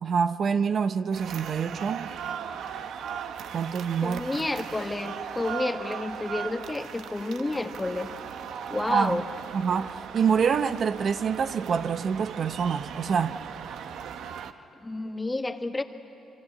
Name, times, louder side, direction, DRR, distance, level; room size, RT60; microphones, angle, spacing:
voice 1, 0.0-2.1 3.5-4.2 8.9-9.2 9.5-13.4, right 6 dB, 55° right, 0.7 m, -26 dB
sound 1, 1.1-14.5, right 8 dB, 75° right, 1.0 m, -38 dB
voice 2, 4.0-8.1 8.7-9.3 14.8-15.8, left 2 dB, 15° left, 1.4 m, -30 dB
28.5 x 23.0 x 8.5 m
cardioid pair, 90°, 0 cm